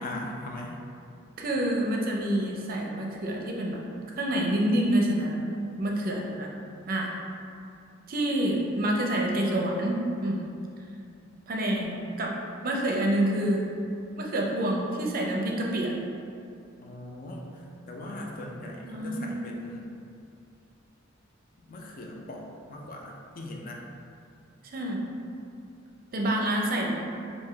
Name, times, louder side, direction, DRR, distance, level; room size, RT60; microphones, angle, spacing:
voice 1, 0.0-0.8 16.8-19.9 21.7-23.8, left 1 dB, 45° left, 0 dB, 0.4 m, -40 dB
voice 2, 1.4-3.8 4.2-5.4 5.8-6.5 6.9-7.1 8.1-10.4 11.5-12.3 12.6-13.6 14.2-15.9 18.8-19.3 24.6-25.0 26.1-27.0, right 1 dB, 45° right, -1 dB, 0.5 m, -27 dB
3.7 x 2.6 x 3.3 m, 2.6 s
head